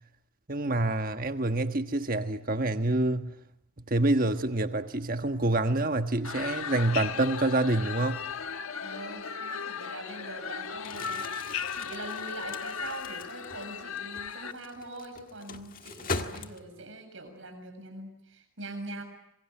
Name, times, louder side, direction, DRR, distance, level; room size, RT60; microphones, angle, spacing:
voice 1, 0.5-3.3 3.9-8.2, right 2 dB, 40° right, 1.4 m, -27 dB
sound 1, 6.2-14.5, left 6 dB, 85° left, 1.3 m, -36 dB
voice 2, 8.8-19.0, right 2 dB, 65° right, 7.2 m, -43 dB
Crumpling crinkling, 10.7-16.9, left 3 dB, 40° left, 1.7 m, -40 dB
26.5 x 23.0 x 9.0 m
head